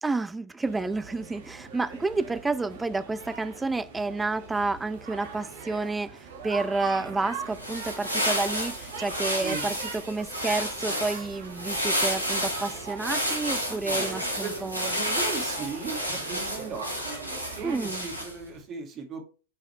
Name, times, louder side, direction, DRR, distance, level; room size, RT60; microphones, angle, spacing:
voice 1, 0.0-6.2 6.4-14.9 17.6-18.1, right 3 dB, 10° right, 0.4 m, -30 dB
sound 1, 0.6-17.8, right 5 dB, 55° right, 1.5 m, -42 dB
sound 2, 7.4-18.5, equal, 85° right, 2.2 m, -31 dB
voice 2, 13.7-16.9 17.5-19.2, right 5 dB, 30° right, 2.1 m, -37 dB
7.6 x 4.9 x 3.4 m
figure-of-eight pair, 90°, 0 cm